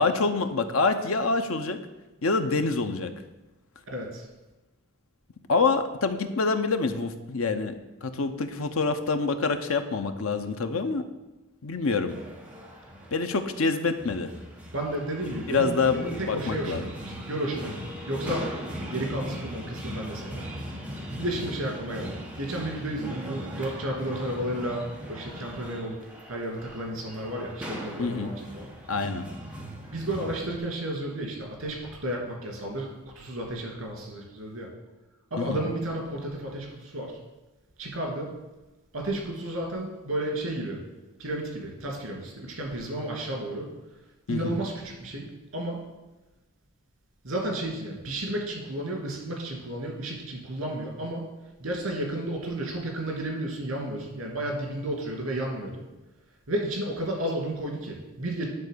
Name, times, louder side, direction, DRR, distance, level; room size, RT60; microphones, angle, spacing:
voice 1, 0.0-1.8 2.2-3.1 5.5-7.7 8.0-11.0 11.6-12.2 13.1-14.3 15.5-16.8 28.0-28.3 28.9-29.2 35.4-35.6 44.3-44.6, left 4 dB, 80° left, 8 dB, 0.7 m, -26 dB
voice 2, 3.9-4.3 14.7-17.7 18.1-18.5 18.9-20.5 21.2-26.0 26.3-28.7 29.9-34.7 35.3-37.2 37.8-38.3 38.9-40.8 41.2-43.7 44.3-45.8 47.2-51.3 51.6-55.8 56.5-58.5, right 1 dB, 70° right, 0 dB, 2.7 m, -32 dB
sound 1, 12.1-30.6, equal, 5° right, 1.2 m, -39 dB
10.5 x 3.8 x 6.7 m, 1.1 s
head